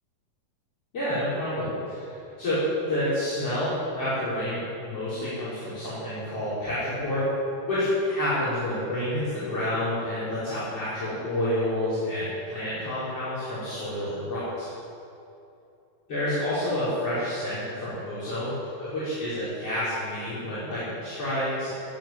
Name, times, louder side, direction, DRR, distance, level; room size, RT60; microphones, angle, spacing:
voice 1, 0.9-7.2 7.7-14.7 16.1-21.7, left 1 dB, 40° left, -12 dB, 6.0 m, -29 dB
19.5 x 8.8 x 7.5 m, 2.7 s
omnidirectional pair, 4.1 m